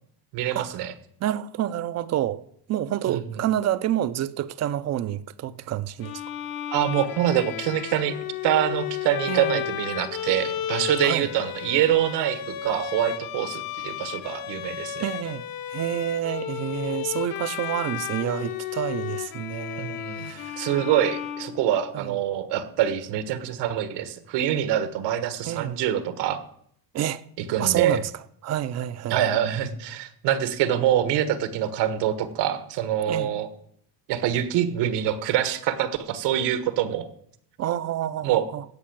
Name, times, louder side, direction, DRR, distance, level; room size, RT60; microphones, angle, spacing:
voice 1, 0.3-0.9 3.1-3.2 6.7-8.1 8.4-15.1 19.8-26.4 27.5-28.0 29.1-33.5 34.1-37.0 38.2-38.5, right 11 dB, 80° right, 1.6 m, -25 dB
voice 2, 1.2-2.4 2.7-6.2 9.3-9.6 11.0-11.3 15.0-15.4 15.7-20.7 21.9-22.2 25.4-25.8 26.9-27.2 27.6-28.1 28.4-29.2 33.1-33.4 37.6-38.6, right 12 dB, 40° right, 0.6 m, -28 dB
Bowed string instrument, 6.0-22.1, left 11 dB, 55° left, 1.1 m, -33 dB
16.0 x 5.6 x 8.7 m
cardioid pair, 170°, 41 cm